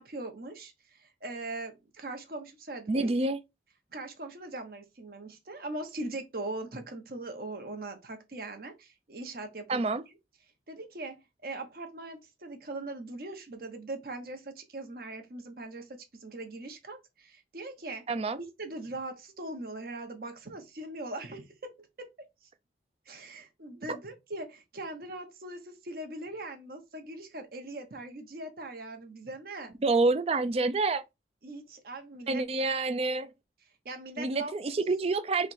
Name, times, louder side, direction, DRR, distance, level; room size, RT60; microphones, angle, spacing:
voice 1, 0.0-3.1 3.9-9.9 10.7-18.1 18.4-21.9 22.4-22.5 23.1-29.7 31.4-32.4 33.8-34.5, right 2 dB, 55° right, 1.0 m, -41 dB
voice 2, 2.9-3.4 9.7-10.0 18.1-18.4 23.9-24.0 29.8-31.0 32.3-33.3 34.2-35.5, right 3 dB, 35° right, 0.4 m, -27 dB
3.2 x 3.0 x 4.4 m
head